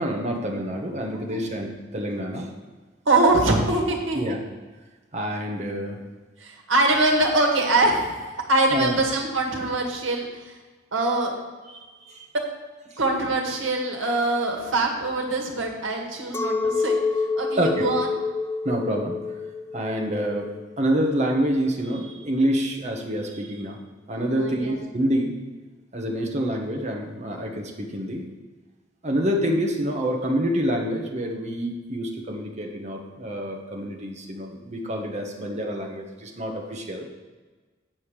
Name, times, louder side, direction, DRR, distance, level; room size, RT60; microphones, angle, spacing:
voice 1, 0.0-2.5 4.1-4.4 5.1-6.0 8.7-9.0 11.7-12.3 17.6-17.9 18.6-19.1 19.7-20.5 20.8-23.8 24.1-25.3 25.9-28.2 29.0-37.1, equal, 35° right, 1 dB, 1.4 m, -27 dB
voice 2, 3.1-4.4 6.4-8.2 8.5-10.5 10.9-11.3 12.3-12.5 13.0-17.0 17.4-18.1 24.3-24.8, right 2 dB, 80° right, 1 dB, 1.8 m, -23 dB
Chink clink, 16.3-21.8, left 4 dB, 10° left, 0.4 m, -28 dB
9.1 x 5.4 x 6.6 m, 1.3 s
head